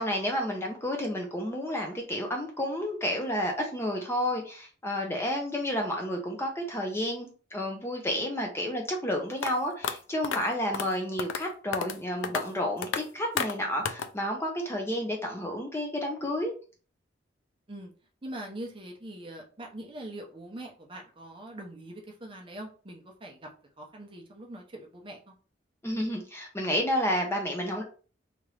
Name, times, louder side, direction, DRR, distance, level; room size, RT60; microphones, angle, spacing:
voice 1, 0.0-16.5 25.8-27.8, equal, 15° left, 0.5 m, -31 dB
sound 1, 9.4-9.5 9.8-9.9 10.2-10.4 10.7-10.9 11.2-11.4 11.7-12.0 12.2-12.4 12.8-13.0 13.4-13.5 13.8-14.1, left 7 dB, 90° left, 0.4 m, -30 dB
voice 2, 18.2-23.5 23.8-25.3, right 1 dB, 30° right, 0.7 m, -43 dB
2.9 x 2.5 x 3.2 m
head